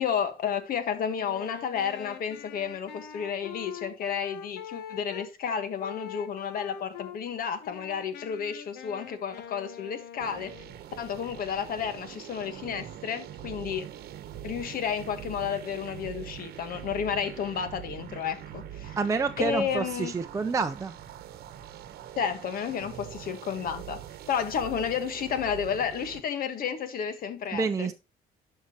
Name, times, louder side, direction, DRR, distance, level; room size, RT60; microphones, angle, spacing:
voice 1, 0.0-10.5 11.0-13.9 14.4-19.0 19.4-20.1 22.2-27.9, left 7 dB, 60° left, 1.5 m, -31 dB
Wind instrument woodwind instrument, 1.1-5.3 5.8-7.2 7.6-10.8, left 8 dB, 75° left, 1.1 m, -43 dB
sound 1, 10.2-26.2, right 11 dB, 70° right, 1.0 m, -43 dB
voice 2, 19.0-20.9 27.5-27.9, right 4 dB, 20° right, 0.5 m, -28 dB
11.0 x 5.6 x 2.9 m
cardioid pair, 110°, 17 cm